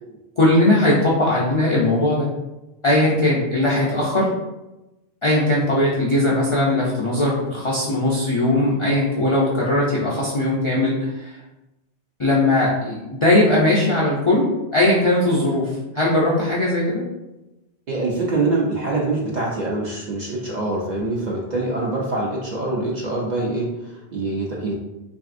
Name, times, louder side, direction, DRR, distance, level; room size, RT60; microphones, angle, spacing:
voice 1, 0.4-2.3 2.8-4.3 5.2-11.3 12.2-14.5 14.7-17.0, left 1 dB, 50° left, -5 dB, 0.4 m, -19 dB
voice 2, 17.9-24.7, right 2 dB, 55° right, -3 dB, 0.5 m, -24 dB
3.2 x 2.6 x 2.4 m, 1.0 s
omnidirectional pair, 1.1 m